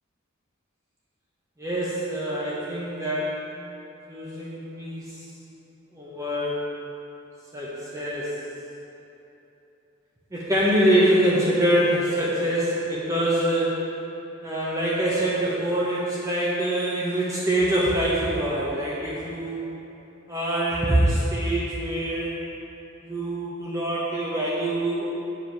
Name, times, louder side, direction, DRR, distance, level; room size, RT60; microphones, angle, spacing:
voice 1, 1.6-3.4 4.1-5.2 5.9-6.6 7.5-8.3 10.3-13.8 14.4-19.7 20.3-22.5 23.0-25.1, right 1 dB, 15° right, -7 dB, 0.8 m, -24 dB
7.0 x 5.0 x 4.5 m, 3.0 s
head